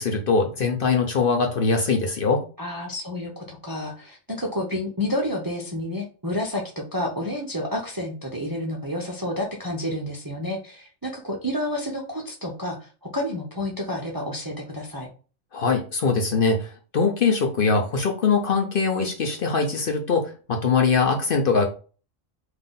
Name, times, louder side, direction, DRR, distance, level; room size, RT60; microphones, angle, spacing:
voice 1, 0.0-2.4 15.5-21.6, left 4 dB, 50° left, 3 dB, 0.8 m, -22 dB
voice 2, 2.6-15.1, left 1 dB, 25° right, 0 dB, 0.6 m, -30 dB
3.8 x 2.7 x 3.7 m, 0.36 s
omnidirectional pair, 1.3 m